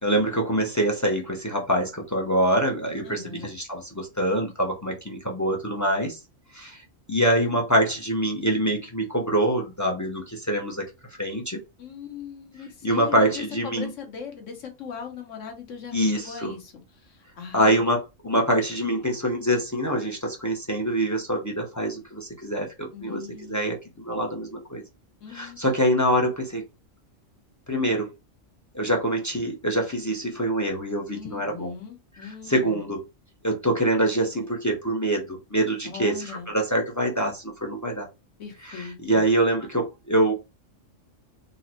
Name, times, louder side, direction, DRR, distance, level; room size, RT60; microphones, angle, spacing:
voice 1, 0.0-6.2 6.5-6.8 7.1-10.8 11.2-11.6 12.8-13.9 15.9-16.5 17.5-23.2 23.5-24.8 25.3-26.6 27.7-28.1 28.7-31.7 32.2-33.0 33.4-38.1 38.7-40.3, right 1 dB, 25° left, 0.4 m, -25 dB
voice 2, 3.0-3.5 11.8-17.8 22.9-23.7 25.2-25.6 31.1-32.9 35.8-36.5 38.4-39.2, left 6 dB, 75° left, 1.2 m, -40 dB
3.9 x 2.1 x 2.8 m
omnidirectional pair, 1.3 m